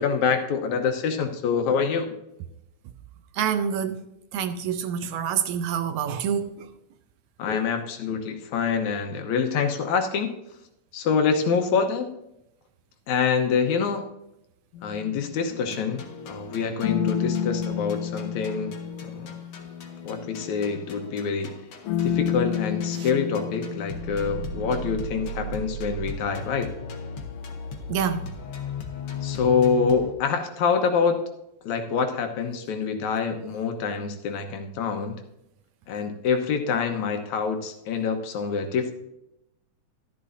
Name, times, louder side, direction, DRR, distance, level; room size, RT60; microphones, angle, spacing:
voice 1, 0.0-2.1 7.4-10.3 10.9-12.1 13.1-14.1 14.8-18.7 19.0-19.3 20.0-21.5 22.0-26.7 29.2-31.2 31.6-35.2 35.9-38.9, left 5 dB, 75° left, 2.3 m, -26 dB
voice 2, 3.3-4.1 4.3-6.7 23.0-23.1 27.9-28.3, right 8 dB, 80° right, 1.9 m, -27 dB
sound 1, 14.8-15.8 16.8-20.9 21.9-25.1, left 9 dB, 90° left, 2.2 m, -30 dB
sound 2, 15.5-30.1, left 2 dB, 60° left, 1.7 m, -37 dB
12.5 x 11.0 x 2.6 m
omnidirectional pair, 3.5 m